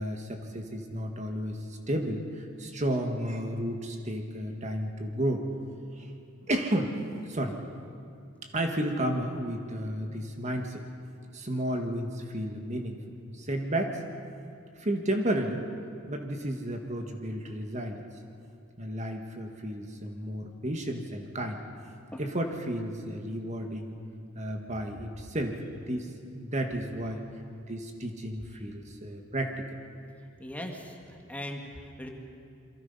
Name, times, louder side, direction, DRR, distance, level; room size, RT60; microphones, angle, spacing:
voice 1, 0.0-5.5 5.9-6.1 6.5-6.9 7.3-7.6 8.5-10.8 11.3-13.0 13.3-14.0 14.8-15.6 16.1-18.0 18.8-21.6 22.2-24.0 24.4-27.2 27.7-29.8, right 1 dB, 35° right, 4 dB, 1.7 m, -32 dB
voice 2, 30.4-32.1, left 1 dB, 5° left, 2 dB, 1.9 m, -40 dB
28.0 x 23.0 x 5.6 m, 2.4 s
head